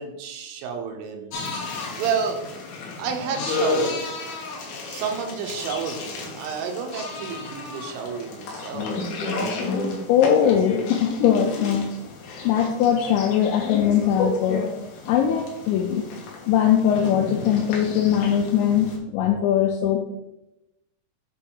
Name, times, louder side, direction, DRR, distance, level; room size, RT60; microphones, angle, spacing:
voice 1, 0.0-1.3 2.0-2.4 3.0-4.1 4.9-8.9, right 6 dB, 80° right, 4 dB, 3.3 m, -30 dB
sound 1, 1.3-19.0, left 3 dB, 70° left, 2.7 m, -32 dB
voice 2, 10.1-11.9 12.4-14.7 15.1-16.1 16.5-20.0, left 9 dB, 85° left, 4 dB, 2.6 m, -21 dB
8.0 x 4.6 x 3.8 m, 0.93 s
omnidirectional pair, 5.7 m